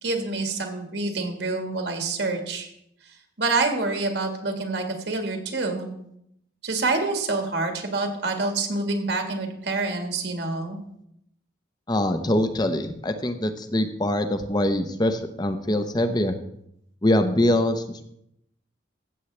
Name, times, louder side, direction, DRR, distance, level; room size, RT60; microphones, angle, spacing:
voice 1, 0.0-2.7 3.4-5.9 6.6-10.8, right 3 dB, 70° right, 4 dB, 1.7 m, -27 dB
voice 2, 11.9-16.4 17.0-18.1, left 1 dB, 20° left, 9 dB, 0.7 m, -23 dB
14.5 x 8.1 x 3.3 m, 0.76 s
head